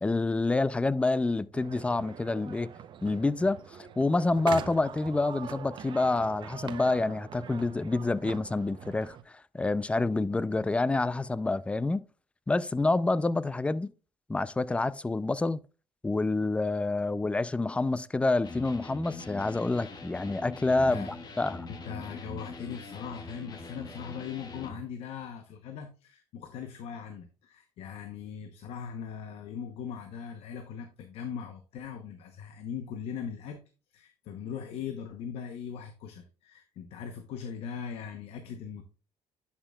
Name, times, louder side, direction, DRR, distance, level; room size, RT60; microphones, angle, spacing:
voice 1, 0.0-2.7 3.0-12.1 12.5-13.9 14.3-15.6 16.0-21.7, left 2 dB, 10° left, 0.4 m, -28 dB
sound 1, 1.5-9.2, right 8 dB, 50° right, 0.7 m, -43 dB
Electric guitar, 18.4-24.8, left 3 dB, 45° left, 1.4 m, -43 dB
voice 2, 21.7-33.6 33.9-38.8, left 7 dB, 75° left, 0.9 m, -40 dB
11.0 x 5.9 x 2.3 m
cardioid pair, 100°, 10 cm